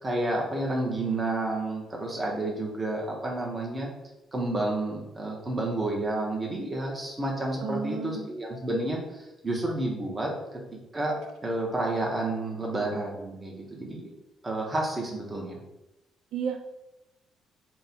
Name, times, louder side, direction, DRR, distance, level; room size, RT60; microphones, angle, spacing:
voice 1, 0.0-3.9 4.3-10.6 10.9-11.1 11.4-14.1 14.4-15.6, right 2 dB, 20° right, -1 dB, 0.8 m, -30 dB
voice 2, 7.6-8.3 16.3-16.6, right 5 dB, 75° right, 5 dB, 0.3 m, -32 dB
4.2 x 2.2 x 4.1 m, 0.92 s
cardioid pair, 155°, 0 cm